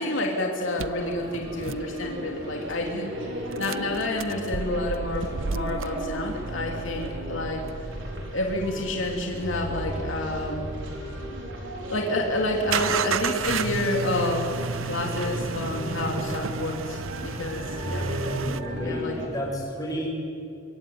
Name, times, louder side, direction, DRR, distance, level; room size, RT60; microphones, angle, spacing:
voice 1, 0.0-3.1 3.4-7.6 8.3-10.8 11.9-18.2 18.8-19.2, left 1 dB, 70° left, 1 dB, 3.0 m, -29 dB
sound 1, 0.8-2.5 3.5-11.7 12.7-18.6, right 5 dB, 85° right, 0.7 m, -33 dB
sound 2, 1.0-19.3, equal, 70° right, 4.8 m, -36 dB
voice 2, 18.2-20.1, equal, 20° left, -2 dB, 7.5 m, -32 dB
25.0 x 23.0 x 9.5 m, 2.8 s
head